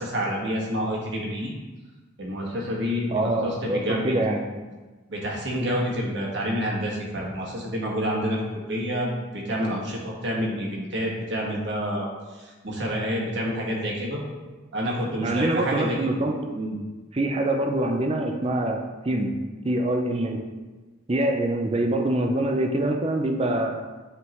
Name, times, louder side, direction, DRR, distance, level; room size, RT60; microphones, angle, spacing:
voice 1, 0.0-1.5 2.2-4.2 5.1-8.4 8.7-12.1 12.3-14.2 14.7-16.0 16.5-16.7, equal, 60° right, -3 dB, 1.5 m, -28 dB
voice 2, 3.1-4.4 15.2-16.6 17.1-19.3 19.6-20.4 21.1-23.9, right 1 dB, 30° right, 3 dB, 0.5 m, -25 dB
9.5 x 3.7 x 3.1 m, 1.3 s
head